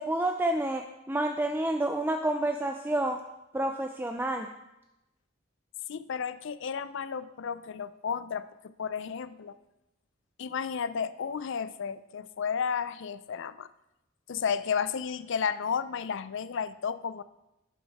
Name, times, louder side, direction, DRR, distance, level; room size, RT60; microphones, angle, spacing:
voice 1, 0.0-3.2 3.5-4.5, right 1 dB, 10° right, 5 dB, 0.4 m, -29 dB
voice 2, 5.9-9.5 10.4-13.7 14.3-17.2, left 6 dB, 60° left, 14 dB, 0.5 m, -32 dB
11.5 x 8.4 x 3.6 m, 0.92 s
head